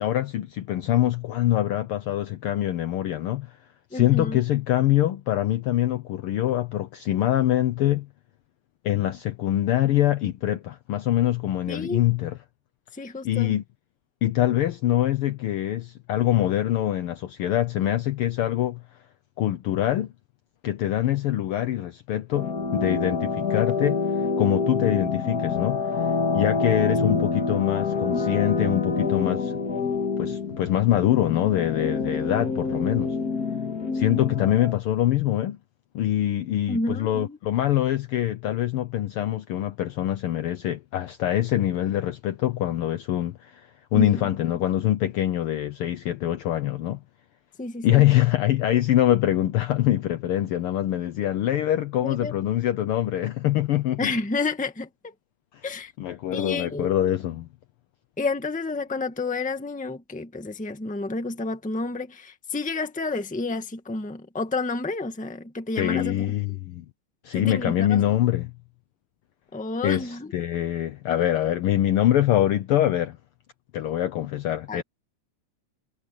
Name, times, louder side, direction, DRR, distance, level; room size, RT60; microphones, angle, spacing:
voice 1, 0.0-3.6 3.9-8.1 8.8-12.4 13.2-13.6 14.2-18.8 19.4-20.1 20.6-29.6 30.2-33.2 33.9-35.6 35.9-47.0 47.8-54.1 55.5-55.6 56.0-57.5 65.8-66.8 67.2-68.5 69.8-73.2 73.7-74.8, left 12 dB, 85° left, 1.2 m, -24 dB
voice 2, 3.9-4.4 11.7-12.0 12.9-13.6 26.9-27.2 36.7-37.4 43.9-44.2 47.6-48.0 52.0-52.3 54.0-55.1 55.6-55.9 56.3-56.9 58.2-66.2 67.3-68.2 69.5-70.3 74.7-74.8, left 3 dB, 5° left, 0.9 m, -30 dB
sound 1, 22.3-34.7, left 4 dB, 35° left, 1.9 m, -27 dB
omnidirectional pair, 3.4 m